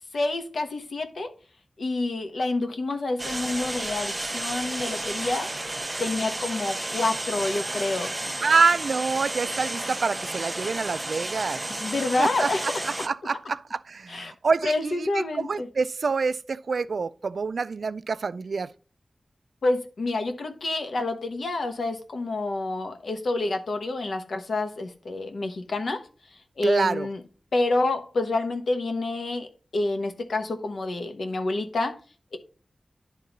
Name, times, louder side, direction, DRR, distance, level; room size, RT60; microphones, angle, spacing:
voice 1, 0.1-1.3 1.8-5.5 6.0-8.1 11.8-12.8 14.1-14.3 14.6-15.7 19.6-26.0 26.6-27.2 27.5-29.5 29.7-31.9, left 2 dB, 90° left, 1.1 m, -28 dB
sound 1, 3.2-13.1, right 1 dB, 20° right, 0.5 m, -32 dB
voice 2, 8.4-11.6 12.2-18.7 26.6-27.1, right 4 dB, 80° right, 0.3 m, -26 dB
10.5 x 3.7 x 4.0 m
wide cardioid pair, 95°, 0 cm